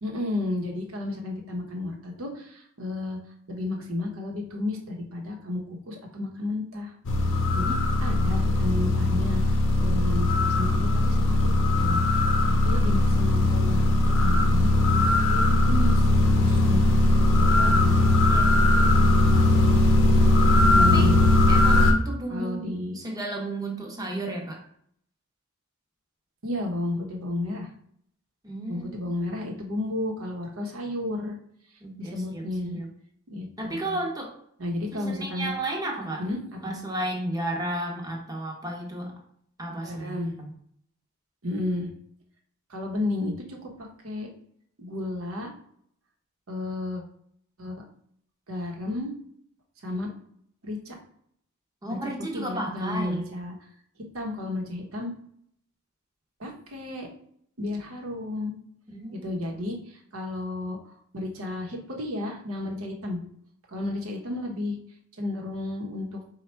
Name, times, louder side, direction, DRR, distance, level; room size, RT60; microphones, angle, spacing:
voice 1, 0.0-3.2 3.5-6.9 7.3-16.1 16.4-16.8 17.4-18.0 20.6-21.2 22.3-23.0 26.4-27.7 28.7-31.4 32.0-32.8 33.3-34.0 34.6-35.6 36.2-36.4 36.6-36.7 39.8-40.3 41.4-41.9 42.7-44.3 44.8-45.5 46.5-47.0 47.6-47.8 48.5-49.1 49.8-50.1 50.6-51.0 51.9-52.0 52.3-53.6 54.1-55.1 56.4-57.1 57.6-58.5 59.1-63.2 63.7-64.8 65.2-66.2, left 2 dB, 65° right, 1 dB, 0.9 m, -32 dB
sound 1, 7.0-21.9, left 2 dB, 60° left, 0.7 m, -20 dB
voice 2, 20.8-21.1 21.5-24.6 28.4-29.1 31.8-32.9 33.6-34.3 34.9-36.2 36.6-39.1 39.6-40.5 51.8-53.2 58.9-59.3, right 1 dB, 15° right, 0 dB, 0.8 m, -33 dB
4.2 x 2.3 x 4.4 m, 0.66 s
head